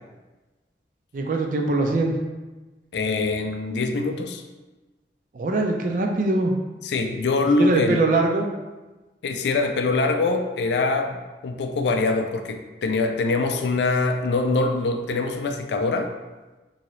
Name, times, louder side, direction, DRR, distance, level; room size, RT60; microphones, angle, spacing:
voice 1, 1.1-2.1 5.3-6.5 7.6-8.5, right 2 dB, 50° right, 3 dB, 0.3 m, -22 dB
voice 2, 2.9-4.4 6.8-8.0 9.2-16.1, left 3 dB, 80° left, 6 dB, 0.3 m, -23 dB
2.8 x 2.7 x 3.0 m, 1.2 s
head